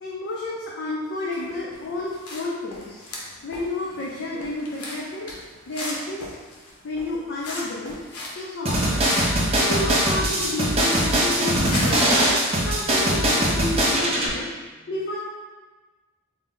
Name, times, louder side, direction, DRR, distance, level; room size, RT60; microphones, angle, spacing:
voice 1, 0.0-3.0 3.4-5.3 5.7-6.3 6.8-8.0 8.4-9.1 9.6-12.3 12.6-14.5 14.9-15.2, left 2 dB, 55° left, -5 dB, 0.4 m, -30 dB
sound 1, 1.3-2.4 2.7-8.4 8.7-12.5, left 2 dB, 85° left, 0.7 m, -37 dB
sound 2, 8.7-14.3, right 1 dB, 25° right, 0.6 m, -21 dB
3.9 x 2.1 x 3.6 m, 1.3 s
head